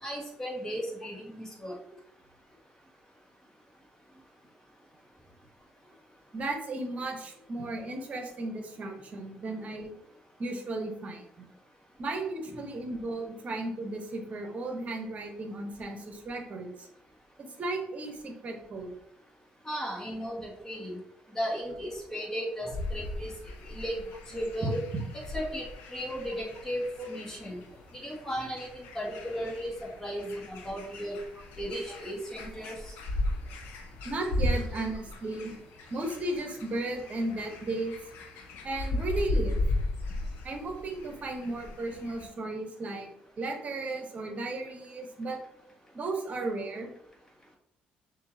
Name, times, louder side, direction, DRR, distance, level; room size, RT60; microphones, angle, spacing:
voice 1, 0.0-1.8 19.7-21.0 21.3-23.3 23.7-24.0 24.3-24.8 25.3-27.6 28.0-31.2 31.6-32.9, equal, 15° left, -2 dB, 1.7 m, -35 dB
voice 2, 6.3-9.9 10.4-11.5 12.0-16.9 17.4-18.9 24.6-25.1 27.0-27.1 30.3-30.4 34.0-35.6 35.9-38.0 38.6-39.6 40.4-43.1 43.4-45.4 45.9-46.9, right 2 dB, 45° right, 3 dB, 1.1 m, -35 dB
sound 1, 22.7-42.3, left 1 dB, 85° left, 0.8 m, -36 dB
6.2 x 2.8 x 2.8 m, 0.78 s
supercardioid pair, 80°, 3 cm